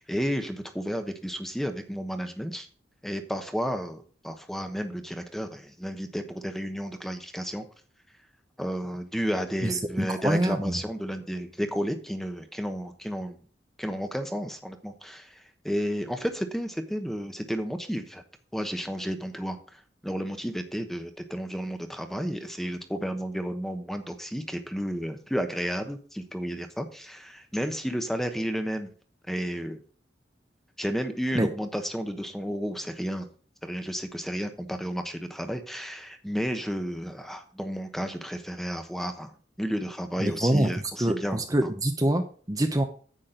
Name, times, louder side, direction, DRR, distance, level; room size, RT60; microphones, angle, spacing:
voice 1, 0.0-2.7 3.0-7.7 8.6-13.4 13.8-18.2 18.5-19.6 20.0-28.9 29.3-29.8 30.8-33.3 33.6-39.3 39.6-41.7, equal, ahead, 7 dB, 1.1 m, -32 dB
voice 2, 9.6-10.7 31.3-31.5 40.2-40.7 41.0-42.8, right 1 dB, 20° right, 5 dB, 0.9 m, -25 dB
10.0 x 8.5 x 3.9 m, 0.41 s
head